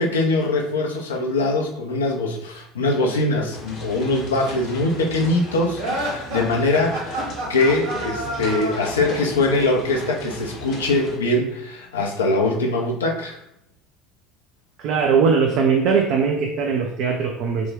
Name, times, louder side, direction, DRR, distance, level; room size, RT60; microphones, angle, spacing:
voice 1, 0.0-7.2 7.5-13.4, left 2 dB, 75° left, 0 dB, 0.5 m, -22 dB
sound 1, 3.5-11.2, left 1 dB, 50° left, 0.9 m, -36 dB
sound 2, 5.8-9.3, right 1 dB, 70° right, 1.4 m, -29 dB
voice 2, 14.8-17.7, right 5 dB, 55° right, 2 dB, 0.3 m, -20 dB
3.3 x 2.1 x 3.3 m, 0.79 s
figure-of-eight pair, 65°, 0 cm